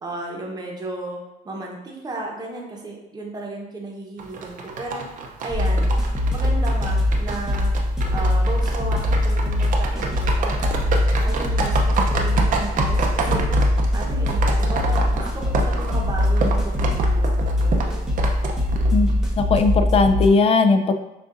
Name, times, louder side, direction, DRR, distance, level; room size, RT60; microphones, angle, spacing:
voice 1, 0.0-5.1 5.4-5.9 6.3-7.7 8.1-10.8 11.2-13.5 13.9-18.1, right 2 dB, 25° right, -1 dB, 0.9 m, -34 dB
sound 1, 4.2-19.1, right 4 dB, 50° right, 0.6 m, -28 dB
sound 2, 5.5-20.3, left 1 dB, 5° right, 0.7 m, -21 dB
voice 2, 18.9-20.9, left 4 dB, 35° left, 7 dB, 0.4 m, -18 dB
6.4 x 2.5 x 2.5 m, 0.98 s
cardioid pair, 110°, 17 cm